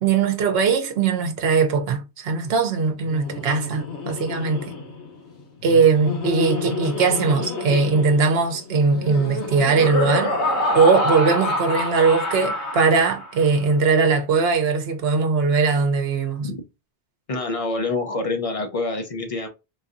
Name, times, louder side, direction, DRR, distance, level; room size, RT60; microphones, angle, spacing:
voice 1, 0.0-4.7 5.6-10.3 10.7-16.5, right 4 dB, 70° right, 0.9 m, -20 dB
Laughter, 3.0-13.5, left 2 dB, 85° left, 1.2 m, -27 dB
voice 2, 17.3-19.5, left 2 dB, 40° left, 0.6 m, -26 dB
3.9 x 2.6 x 2.5 m
omnidirectional pair, 1.1 m